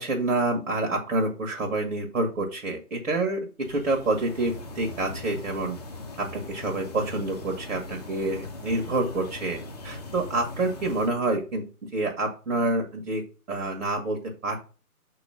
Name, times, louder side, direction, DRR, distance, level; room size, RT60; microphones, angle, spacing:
voice 1, 0.0-3.4 3.7-5.8 6.2-9.6 9.8-11.6 11.9-13.2 13.5-14.6, right 2 dB, 65° right, 2 dB, 1.7 m, -27 dB
sound 1, 3.6-11.1, left 2 dB, 25° left, 0.7 m, -40 dB
6.4 x 3.1 x 5.1 m, 0.35 s
figure-of-eight pair, 150°, 45 cm